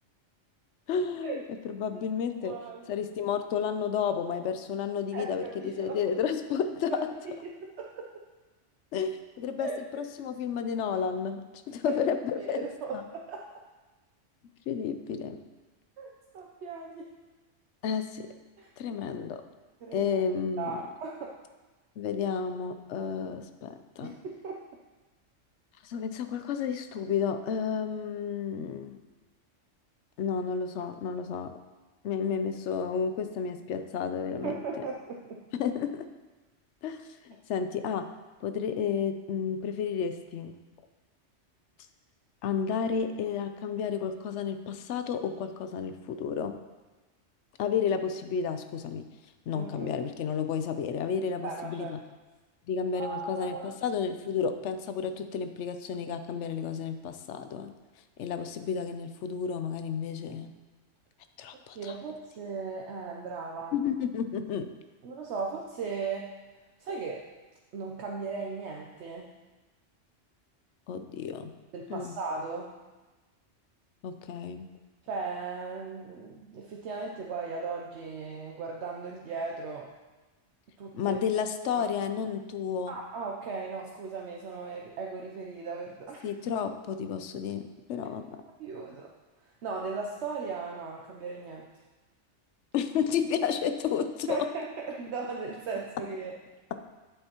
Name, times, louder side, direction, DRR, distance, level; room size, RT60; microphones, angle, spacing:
voice 1, 0.9-2.5 2.9-6.9 8.9-12.6 12.9-13.0 14.7-15.4 17.8-18.3 18.8-19.4 19.9-20.8 22.0-24.1 25.8-29.0 30.2-31.5 32.0-34.6 35.5-36.0 36.8-38.0 38.4-40.5 42.4-46.5 47.6-49.0 49.5-52.0 52.7-57.7 58.2-60.5 61.4-61.9 63.7-64.7 70.9-71.5 71.9-72.1 74.0-74.7 80.9-83.0 86.2-88.4 92.7-94.4, left 7 dB, 75° left, 9 dB, 0.9 m, -31 dB
voice 2, 2.4-2.9 5.1-6.0 6.9-8.1 9.6-9.8 11.9-12.0 12.4-13.4 16.0-17.1 18.6-18.7 19.8-20.1 20.6-21.4 24.0-24.6 34.4-35.4 49.5-49.9 51.4-52.0 52.9-53.7 61.7-63.7 65.0-66.3 66.8-67.3 67.7-69.3 71.7-72.8 75.0-79.9 80.8-81.1 81.7-81.9 82.9-86.3 88.6-89.1 89.4-91.7 94.3-96.3, right 4 dB, 70° right, 0 dB, 0.9 m, -37 dB
8.8 x 7.9 x 2.9 m, 1.2 s
omnidirectional pair, 1.3 m